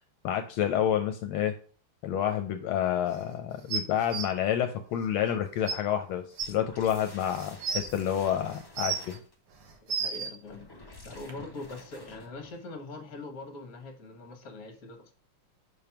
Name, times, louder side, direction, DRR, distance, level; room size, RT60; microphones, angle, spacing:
voice 1, 0.2-1.5 2.0-9.2, left 10 dB, 80° left, 7 dB, 1.4 m, -29 dB
sound 1, 3.7-4.2 5.3-5.4 5.7-5.8 6.4-6.5 7.3-7.9 8.5-9.2 9.6-10.3 11.3-11.4, right 5 dB, 85° right, 1.9 m, -32 dB
sound 2, 6.4-9.3 10.4-12.6, left 2 dB, 25° left, 0.4 m, -50 dB
voice 2, 9.8-10.7 11.0-15.1, left 2 dB, 45° left, 5 dB, 1.6 m, -42 dB
5.2 x 4.5 x 5.7 m, 0.42 s
omnidirectional pair, 2.4 m